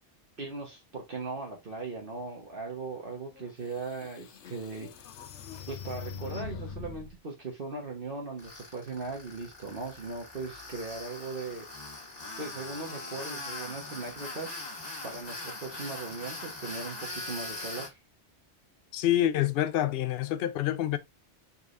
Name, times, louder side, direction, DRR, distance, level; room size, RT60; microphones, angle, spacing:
voice 1, 0.4-4.9 5.7-12.0 12.4-18.0, right 3 dB, 50° right, 1.3 m, -39 dB
sound 1, 3.4-3.5 4.0-7.1, left 6 dB, 85° left, 1.0 m, -42 dB
Tools, 8.4-17.9, left 2 dB, 35° left, 1.9 m, -41 dB
voice 2, 18.9-21.0, left 12 dB, 65° left, 0.7 m, -27 dB
4.8 x 4.1 x 2.5 m
omnidirectional pair, 1.2 m